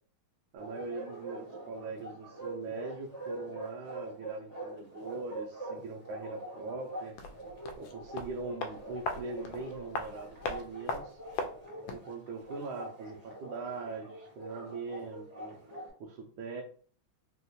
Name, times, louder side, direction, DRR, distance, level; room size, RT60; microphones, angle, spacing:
voice 1, 0.5-7.1 7.8-11.2 11.9-15.5 16.0-16.6, right 3 dB, 75° right, 1 dB, 1.3 m, -41 dB
Bark, 0.6-15.9, right 1 dB, 25° right, 1.1 m, -44 dB
sound 1, 7.1-12.1 12.4-12.5, left 3 dB, 75° left, 1.2 m, -39 dB
3.7 x 2.4 x 2.7 m, 0.42 s
omnidirectional pair, 2.3 m